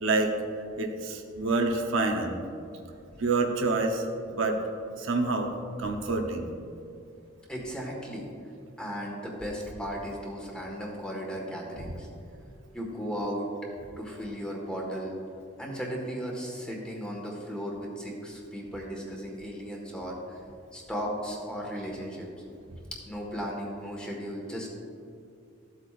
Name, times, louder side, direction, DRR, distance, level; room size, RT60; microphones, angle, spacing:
voice 1, 0.0-0.3 0.8-2.4 3.2-4.6 5.0-5.5 5.8-6.5, right 3 dB, 70° right, 3 dB, 0.8 m, -27 dB
voice 2, 7.5-8.3 8.8-12.1 12.7-13.5 14.0-15.1 15.6-20.4 20.7-22.3 23.1-24.7, equal, 5° left, -2 dB, 1.5 m, -36 dB
14.0 x 8.0 x 2.5 m, 2.5 s
head